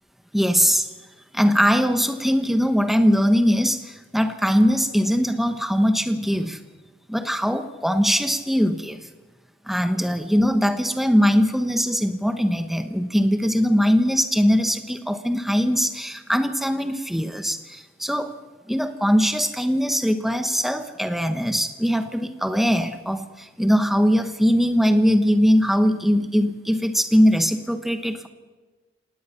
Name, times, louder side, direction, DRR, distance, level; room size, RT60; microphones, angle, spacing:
voice 1, 0.3-0.9 1.3-6.6 7.1-9.1 9.7-18.4 18.7-28.3, equal, ahead, 8 dB, 1.2 m, -21 dB
25.5 x 19.0 x 5.8 m, 1.3 s
head